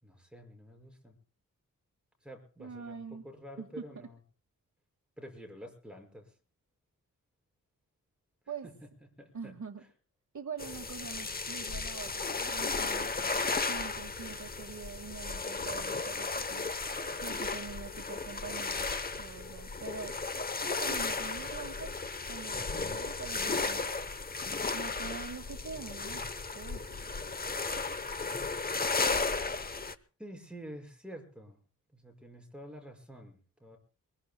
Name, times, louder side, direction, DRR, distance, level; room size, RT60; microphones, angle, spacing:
voice 1, 0.0-1.2 2.2-4.2 5.2-6.4 8.6-8.7 9.2-9.5 30.2-31.6 31.9-33.8, equal, 5° right, 2 dB, 5.8 m, -48 dB
voice 2, 2.6-3.2 3.6-3.8 8.5-8.7 9.3-9.8 10.3-13.1 13.7-16.7 17.2-18.8 19.2-20.2 20.6-21.9 22.3-23.8 24.7-26.2 26.5-27.0, right 5 dB, 60° right, 6 dB, 1.8 m, -44 dB
sound 1, 10.6-30.0, left 3 dB, 30° left, 0.9 m, -35 dB
24.5 x 21.0 x 2.2 m, 0.40 s
wide cardioid pair, 135°, 33 cm